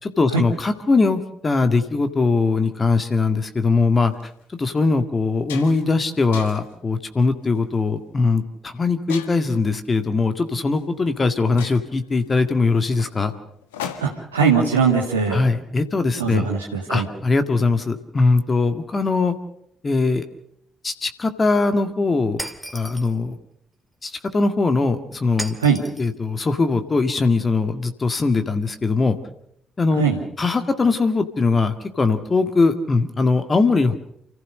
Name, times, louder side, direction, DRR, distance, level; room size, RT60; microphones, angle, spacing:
voice 1, 0.0-4.1 4.6-13.3 15.3-16.5 16.9-19.4 19.8-20.2 20.8-22.4 22.7-23.4 24.0-25.5 26.0-29.2 29.8-30.0 30.4-34.0, left 3 dB, 30° left, 8 dB, 2.0 m, -21 dB
sound 1, 4.0-4.2 4.8-4.9 5.2-5.9 6.3-6.8 7.4-7.7 9.1-9.6 10.8-10.9 11.2-11.3 11.6-14.4, left 8 dB, 75° left, 1.8 m, -37 dB
voice 2, 14.0-15.4 16.2-17.1 25.6-25.8 29.9-30.2, right 6 dB, 80° right, -3 dB, 1.9 m, -20 dB
Shatter, 22.4-23.2 25.4-26.1, equal, ahead, 2.5 m, -34 dB
29.5 x 15.0 x 6.6 m, 0.71 s
figure-of-eight pair, 45°, 0 cm